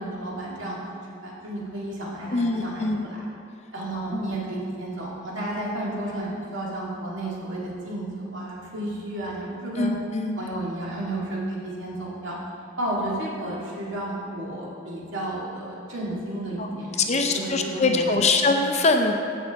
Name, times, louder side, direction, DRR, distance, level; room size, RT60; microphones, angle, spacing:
voice 1, 0.0-3.2 3.7-9.9 10.4-12.4 12.8-18.3, right 1 dB, 70° right, -5 dB, 2.1 m, -32 dB
voice 2, 2.3-3.0 3.9-4.4 9.8-10.4 16.6-16.7 17.0-19.2, left 3 dB, 35° left, 4 dB, 0.6 m, -23 dB
14.5 x 5.7 x 3.6 m, 2.5 s
head